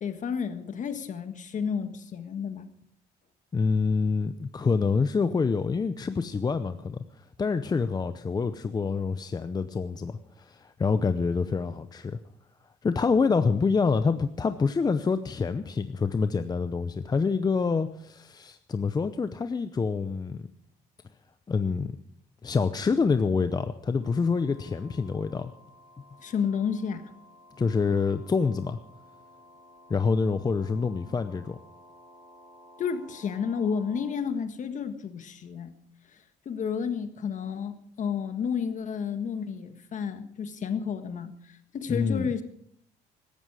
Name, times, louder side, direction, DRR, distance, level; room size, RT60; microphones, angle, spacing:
voice 1, 0.0-2.7 26.2-27.1 32.8-35.7 36.1-36.2 36.5-42.4, left 6 dB, 45° left, 9 dB, 1.6 m, -31 dB
voice 2, 3.5-12.2 12.8-20.4 21.5-21.9 22.4-25.5 27.6-28.8 29.9-31.6 41.9-42.3, left 5 dB, 25° left, 10 dB, 0.7 m, -26 dB
sound 1, 24.0-34.1, left 1 dB, 20° right, 3.7 m, -54 dB
17.0 x 13.5 x 4.9 m, 0.66 s
cardioid pair, 110°, 17 cm